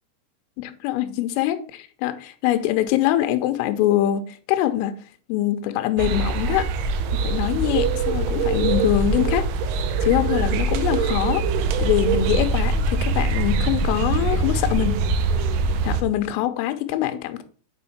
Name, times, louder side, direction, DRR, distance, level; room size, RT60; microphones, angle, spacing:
voice 1, 0.6-4.9 5.3-6.7 7.1-9.5 10.0-11.5 11.8-15.0 15.8-17.4, left 12 dB, 85° left, 3.2 m, -23 dB
sound 1, 6.0-16.0, right 3 dB, 80° right, 2.9 m, -23 dB
7.8 x 5.4 x 4.2 m
omnidirectional pair, 5.9 m